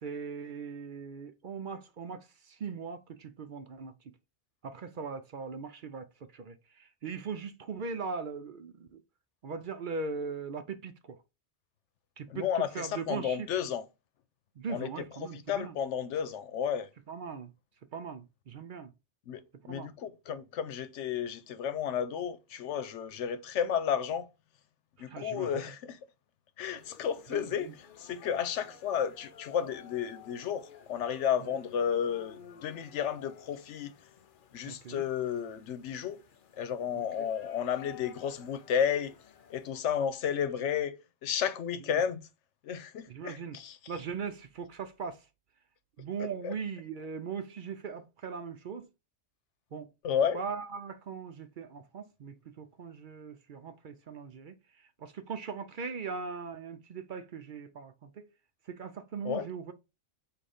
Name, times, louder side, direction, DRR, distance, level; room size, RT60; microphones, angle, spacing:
voice 1, 0.0-4.1 4.6-9.0 9.4-11.2 12.2-12.4 12.7-13.5 14.6-15.7 17.1-17.5 17.9-18.9 19.6-19.9 25.1-25.5 27.3-27.7 34.6-35.0 37.2-37.3 43.1-43.6 43.9-45.2 46.0-48.9 49.7-49.9 50.3-54.6 55.0-58.3 58.7-59.7, right 5 dB, 55° right, 0.6 m, -40 dB
voice 2, 12.3-13.9 14.7-16.9 19.3-24.3 25.0-26.0 26.6-33.9 34.5-36.2 36.6-39.1 39.5-42.3 42.6-43.8 46.2-46.5 50.0-50.4 59.2-59.5, left 8 dB, 90° left, 1.0 m, -32 dB
sound 1, 26.8-39.7, left 7 dB, 55° left, 0.7 m, -54 dB
7.6 x 2.5 x 4.9 m
omnidirectional pair, 1.2 m